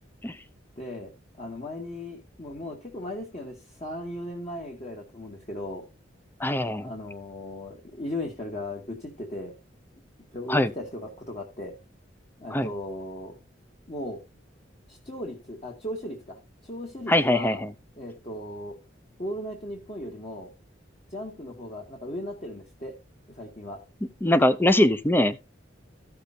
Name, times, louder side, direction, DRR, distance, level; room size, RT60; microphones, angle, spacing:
voice 1, 0.8-1.1 1.4-5.8 6.8-9.5 10.3-11.7 12.4-13.3 13.9-14.2 14.9-16.4 16.6-17.6 18.0-18.8 19.2-20.5 21.1-22.9 23.3-23.8, left 1 dB, 35° left, 1.9 m, -37 dB
voice 2, 6.4-6.9 10.5-10.7 12.5-12.7 17.1-17.7 24.2-25.4, left 1 dB, 10° left, 0.6 m, -22 dB
14.5 x 6.7 x 2.7 m
head